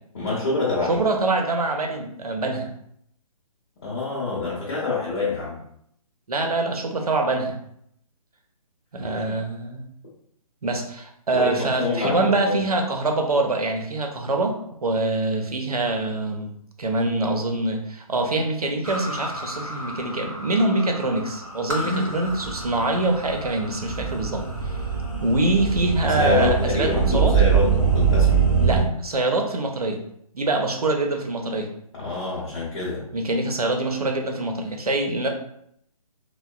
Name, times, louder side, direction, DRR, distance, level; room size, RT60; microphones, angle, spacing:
voice 1, 0.1-1.0 3.8-5.6 9.0-9.3 11.3-12.6 21.8-22.1 26.0-28.4 31.9-33.0, left 3 dB, 40° left, -7 dB, 0.8 m, -26 dB
voice 2, 0.9-2.7 6.3-7.6 8.9-9.8 10.6-24.4 25.2-27.4 28.6-30.0 30.3-31.7 33.1-35.3, right 2 dB, 80° right, 3 dB, 0.6 m, -24 dB
sound 1, 18.8-28.8, right 6 dB, 25° right, 0.8 m, -24 dB
3.4 x 2.1 x 2.3 m, 0.70 s
figure-of-eight pair, 140°, 19 cm